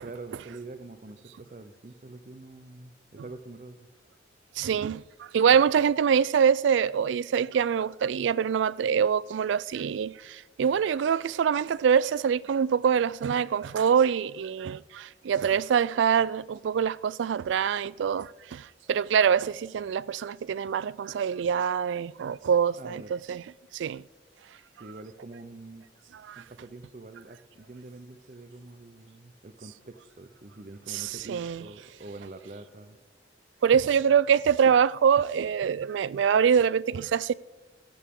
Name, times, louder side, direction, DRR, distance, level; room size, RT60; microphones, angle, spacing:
voice 1, 0.0-3.9 22.8-23.1 24.7-25.9 26.4-33.0 33.7-33.8, right 2 dB, 45° right, 0.7 m, -45 dB
voice 2, 4.6-23.4 23.7-24.0 26.3-26.4 30.9-31.6 33.6-37.3, right 7 dB, 85° right, 0.3 m, -25 dB
15.5 x 14.0 x 3.7 m
head